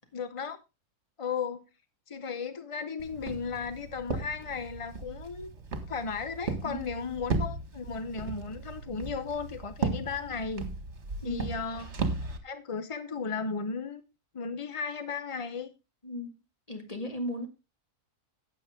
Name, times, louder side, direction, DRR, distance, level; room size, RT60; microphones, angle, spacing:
voice 1, 0.1-0.6 1.2-1.6 2.1-5.5 5.9-10.7 11.2-11.9 12.4-14.0 14.3-15.7, left 5 dB, 40° left, 0.4 m, -35 dB
Walk footsteps, 3.0-12.4, right 3 dB, 50° right, 1.8 m, -36 dB
voice 2, 16.7-17.5, left 1 dB, 25° left, 2.3 m, -35 dB
12.0 x 8.7 x 3.6 m
omnidirectional pair, 1.6 m